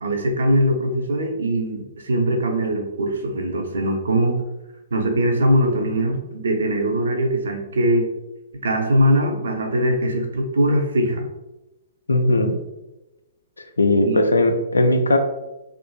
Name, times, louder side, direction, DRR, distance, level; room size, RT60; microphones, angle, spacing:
voice 1, 0.0-4.4 4.9-8.1 8.6-11.3 14.0-14.2, equal, 60° right, 3 dB, 0.5 m, -21 dB
voice 2, 12.1-12.5 13.8-15.2, left 1 dB, 75° left, 6 dB, 0.3 m, -18 dB
2.7 x 2.4 x 2.2 m, 0.99 s
figure-of-eight pair, 115°, 0 cm